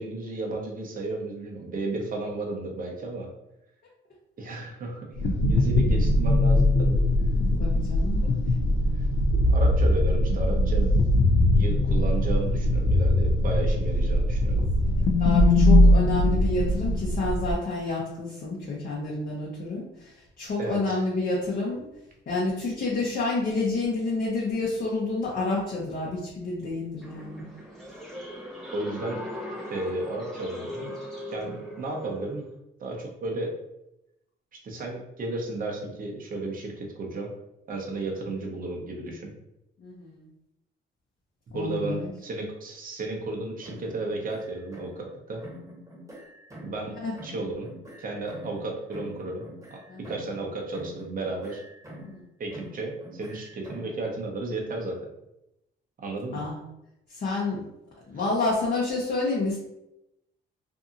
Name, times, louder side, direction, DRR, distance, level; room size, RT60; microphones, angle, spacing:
voice 1, 0.0-3.3 4.4-5.1 5.4-7.0 9.5-10.9 11.5-14.7 20.6-21.0 28.7-29.2 29.7-30.9 31.3-32.4 32.8-33.5 34.6-37.3 37.7-39.3 41.5-45.4 46.6-46.9 47.2-47.7 48.0-49.4 49.7-51.6 52.4-55.1 56.0-56.4, right 2 dB, 45° right, 0 dB, 0.7 m, -33 dB
sound 1, 5.2-17.5, left 1 dB, 75° left, 0.4 m, -21 dB
voice 2, 7.6-8.2 14.5-21.9 22.3-27.5 39.8-40.3 41.5-42.1 47.0-47.1 49.9-50.1 52.0-52.2 56.3-56.6 57.1-57.6 58.1-59.6, left 2 dB, 45° left, -5 dB, 0.8 m, -29 dB
sound 2, 27.0-32.3, left 1 dB, ahead, 0.8 m, -39 dB
sound 3, 43.6-45.1 45.4-46.9 47.1-50.5 50.7-52.2 52.5-54.0, equal, 15° right, 1.1 m, -45 dB
2.6 x 2.6 x 2.5 m, 0.88 s
cardioid pair, 90°, 20 cm